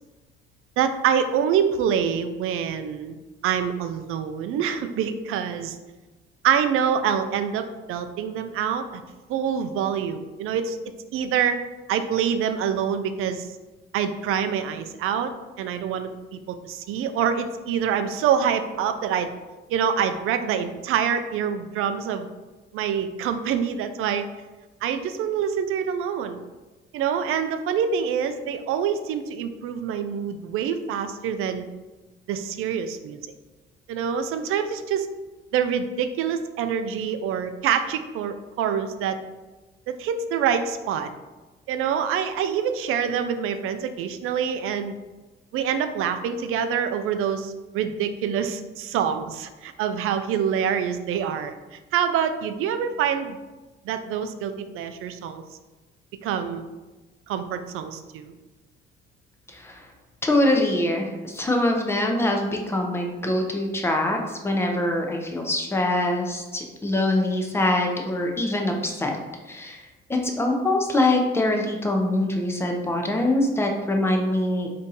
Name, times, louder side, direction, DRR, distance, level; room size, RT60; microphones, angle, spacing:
voice 1, 0.8-3.2 3.4-5.8 6.4-9.0 9.3-10.8 11.1-11.6 11.9-13.5 13.9-15.3 15.6-19.3 19.7-22.3 22.7-24.2 24.8-26.4 26.9-31.6 32.3-33.2 33.9-35.1 35.5-39.2 39.9-41.1 41.7-44.9 45.5-53.4 53.8-55.4 56.2-56.6 57.3-58.3, right 8 dB, 85° right, 9 dB, 0.4 m, -26 dB
voice 2, 59.5-59.9 60.2-69.1 69.5-74.7, left 1 dB, 10° left, 2 dB, 0.5 m, -24 dB
3.6 x 2.8 x 4.0 m, 1.2 s
cardioid pair, 155°, 21 cm